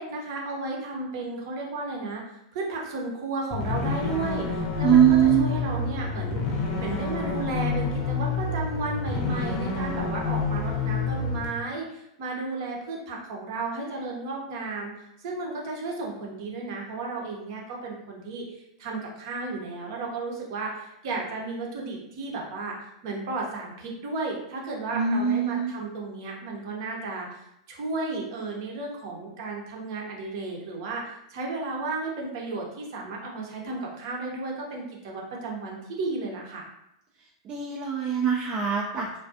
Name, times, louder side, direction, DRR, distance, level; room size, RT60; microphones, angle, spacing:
voice 1, 0.0-2.2 2.5-27.4 27.7-36.6, right 3 dB, 55° right, -1 dB, 0.7 m, -33 dB
sound 1, 3.5-11.5, left 4 dB, 40° left, 0.7 m, -28 dB
voice 2, 4.8-5.5 24.9-25.7 37.4-39.2, right 9 dB, 35° right, -2 dB, 0.4 m, -22 dB
2.4 x 2.2 x 2.5 m, 0.81 s
hypercardioid pair, 105°, 3 cm